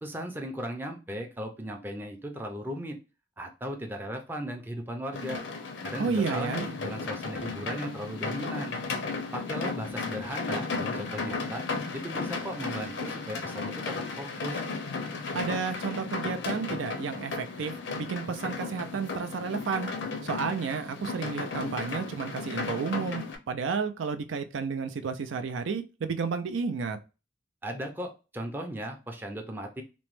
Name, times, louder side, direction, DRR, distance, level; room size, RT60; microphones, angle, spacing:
voice 1, 0.0-3.0 3.4-5.4 5.8-8.8 9.3-11.6 11.9-14.6 27.6-29.8, equal, 10° right, 3 dB, 0.4 m, -37 dB
sound 1, 5.1-23.4, left 4 dB, 70° left, 0.6 m, -35 dB
voice 2, 6.0-6.6 15.3-19.9 20.2-27.0, right 5 dB, 90° right, 8 dB, 0.4 m, -32 dB
3.0 x 2.1 x 3.0 m, 0.31 s
head